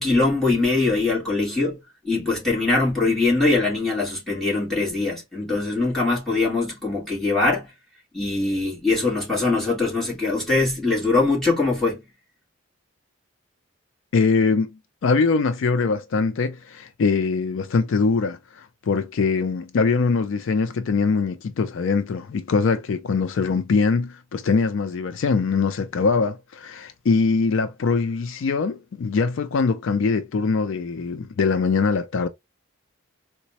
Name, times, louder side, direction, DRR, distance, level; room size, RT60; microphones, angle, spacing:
voice 1, 0.0-1.8 2.0-7.7 8.1-12.0, left 3 dB, ahead, 1.4 m, -22 dB
voice 2, 14.1-32.3, left 4 dB, 65° left, 0.4 m, -22 dB
3.9 x 2.2 x 2.8 m
head